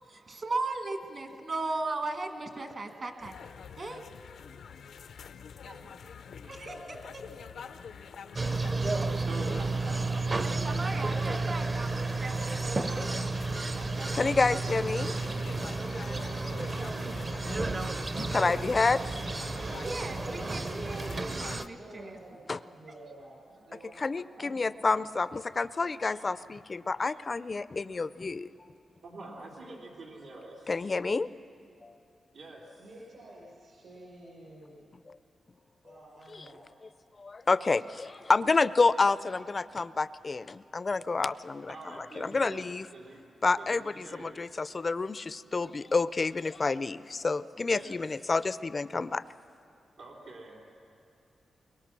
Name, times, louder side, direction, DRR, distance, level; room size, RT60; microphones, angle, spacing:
voice 1, 0.1-3.3 3.8-4.0 5.6-5.9 6.2-7.7 8.0-8.7 10.4-13.1 19.8-22.2 23.0-23.1 24.4-24.5 25.6-25.7, right 2 dB, 45° right, 5 dB, 1.5 m, -38 dB
sound 1, 3.2-21.7, left 7 dB, 80° left, 0.6 m, -47 dB
sound 2, 8.4-21.7, right 3 dB, 30° right, 0.7 m, -32 dB
voice 2, 9.1-11.2 11.5-12.3 13.8-17.2 19.6-19.9 29.0-30.9 32.3-32.8 41.7-43.2 43.6-44.4 47.7-48.4 50.0-50.7, right 2 dB, 90° right, -4 dB, 3.5 m, -47 dB
voice 3, 14.1-15.1 18.3-19.2 22.5-22.6 24.0-28.5 30.7-31.3 31.8-31.9 35.1-35.2 37.2-41.7 42.2-42.9 43.4-49.2, left 3 dB, 35° left, 16 dB, 0.4 m, -29 dB
voice 4, 21.7-25.2 32.8-34.9 35.5-36.7, right 1 dB, 60° right, -5 dB, 6.1 m, -51 dB
23.5 x 22.0 x 6.1 m, 2.6 s
wide cardioid pair, 120°, 0 cm